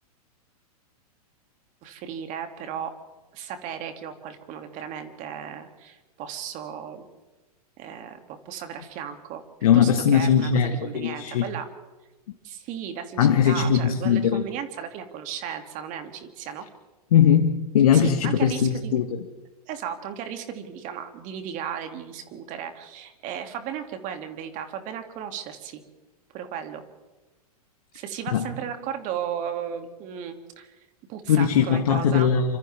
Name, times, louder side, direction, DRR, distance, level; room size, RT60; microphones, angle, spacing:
voice 1, 1.8-2.9 3.3-7.0 7.8-9.4 9.7-11.7 12.4-16.7 17.9-19.0 19.7-25.8 26.3-26.8 27.9-30.7 31.1-32.3, right 8 dB, 40° right, 6 dB, 2.8 m, -35 dB
voice 2, 9.6-11.5 13.2-14.4 17.1-19.2 28.3-28.5 31.3-32.6, left 8 dB, 65° left, 4 dB, 1.9 m, -20 dB
29.0 x 26.0 x 3.7 m, 1.2 s
hypercardioid pair, 105°, 20 cm